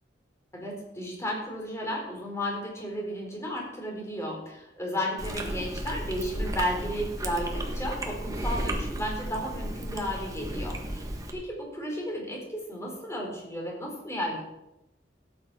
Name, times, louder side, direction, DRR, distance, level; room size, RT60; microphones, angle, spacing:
voice 1, 0.5-14.4, equal, 15° left, -1 dB, 4.1 m, -33 dB
Chewing mastication, 5.2-11.3, right 1 dB, 20° right, 1.6 m, -33 dB
17.0 x 8.9 x 4.8 m, 0.91 s
head